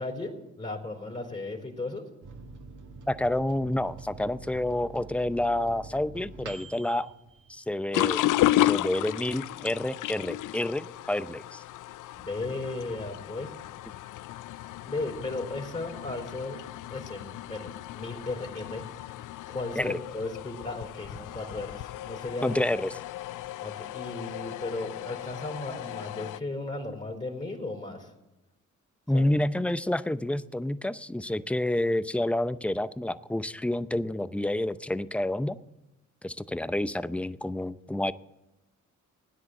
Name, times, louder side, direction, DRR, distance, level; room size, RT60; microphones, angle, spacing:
voice 1, 0.0-2.0 12.1-13.5 14.8-16.6 16.9-18.8 19.5-22.6 23.6-28.1 29.1-29.4, left 2 dB, 20° left, 0 dB, 3.8 m, -35 dB
Microwave oven, 2.2-8.3 8.7-8.8 9.1-9.7, right 3 dB, 65° right, 1.8 m, -46 dB
voice 2, 3.1-7.1 7.5-8.2 8.6-11.6 19.8-20.0 22.4-22.9 29.1-35.6 36.2-38.1, left 1 dB, 5° left, 14 dB, 0.6 m, -29 dB
sound 1, 7.9-26.4, left 15 dB, 70° left, 0.5 m, -33 dB
17.0 x 10.0 x 7.8 m, 0.95 s
supercardioid pair, 55°, 32 cm